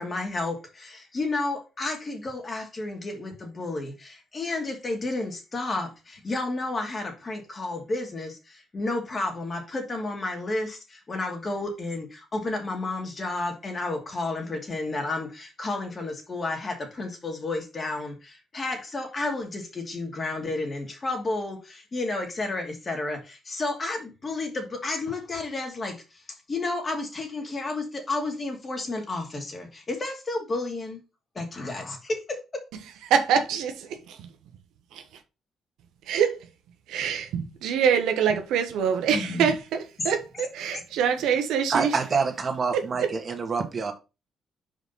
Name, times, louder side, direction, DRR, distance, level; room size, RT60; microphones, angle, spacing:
voice 1, 0.0-26.2 26.5-31.0 31.3-32.4 39.1-39.5 40.7-40.8, left 2 dB, 35° left, 2.5 m, -31 dB
voice 2, 33.1-33.7 34.9-35.0 36.1-36.5 36.9-39.8 40.0-42.0, right 7 dB, 85° right, 1.2 m, -24 dB
voice 3, 41.7-43.9, right 5 dB, 40° right, 1.9 m, -26 dB
5.2 x 5.1 x 5.5 m
cardioid pair, 90°, 0 cm